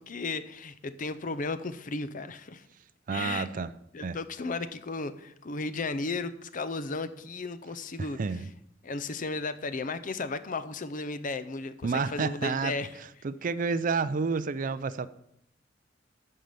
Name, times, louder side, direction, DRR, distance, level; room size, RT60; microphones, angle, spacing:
voice 1, 0.0-2.6 3.1-3.5 3.9-8.2 8.8-12.9, left 3 dB, 45° left, 13 dB, 0.6 m, -34 dB
voice 2, 3.1-3.7 4.0-4.2 8.0-8.4 11.8-15.1, right 4 dB, 45° right, 15 dB, 0.4 m, -30 dB
9.3 x 5.6 x 6.7 m, 0.75 s
head